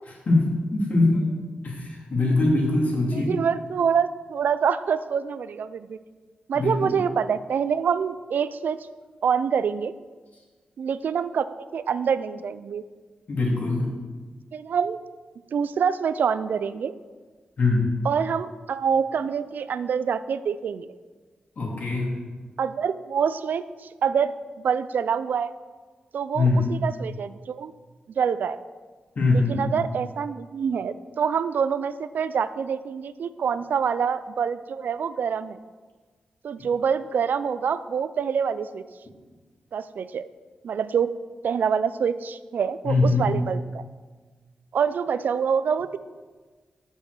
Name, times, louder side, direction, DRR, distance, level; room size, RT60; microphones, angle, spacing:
voice 1, 0.3-1.3 1.6-3.3 6.5-7.0 13.3-13.9 17.6-17.9 21.6-22.2 26.3-26.7 29.2-29.8 42.8-43.4, left 2 dB, 60° left, -2 dB, 2.3 m, -22 dB
voice 2, 3.1-6.0 6.5-8.8 9.2-9.9 10.8-12.8 14.5-15.0 15.5-16.9 18.0-20.9 22.6-24.3 24.6-25.5 26.1-27.7 28.2-28.6 29.3-35.6 36.4-38.8 39.7-40.2 40.6-41.1 41.4-43.8 44.7-46.0, right 7 dB, 80° right, 14 dB, 0.4 m, -26 dB
7.3 x 5.5 x 6.5 m, 1.4 s
cardioid pair, 85°, 3 cm